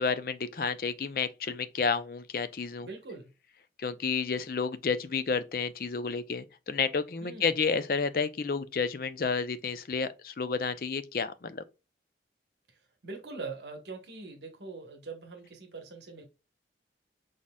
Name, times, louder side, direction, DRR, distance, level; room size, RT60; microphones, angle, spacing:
voice 1, 0.0-2.9 3.8-11.6, left 5 dB, 50° left, 0.5 m, -31 dB
voice 2, 2.8-3.3 7.2-7.6 12.7-16.2, right 4 dB, 75° right, 1.2 m, -43 dB
4.8 x 4.2 x 2.3 m
head